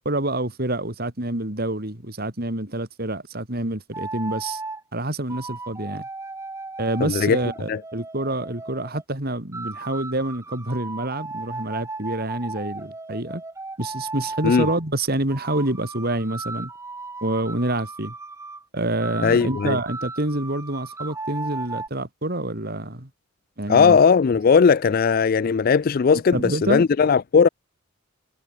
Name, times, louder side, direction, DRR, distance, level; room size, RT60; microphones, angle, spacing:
voice 1, 0.1-4.6 4.9-6.0 6.8-13.4 13.8-16.7 17.2-18.1 18.7-23.1 23.6-24.0 26.1-26.9, right 1 dB, 50° right, 3.6 m, -27 dB
sound 1, 3.9-4.8 5.3-9.0 9.5-14.8 15.3-18.6 19.0-21.9, right 3 dB, 15° right, 1.0 m, -36 dB
voice 2, 7.0-7.4 7.7-7.8 14.4-14.7 19.2-19.8 23.7-27.5, left 5 dB, 45° left, 0.4 m, -18 dB
head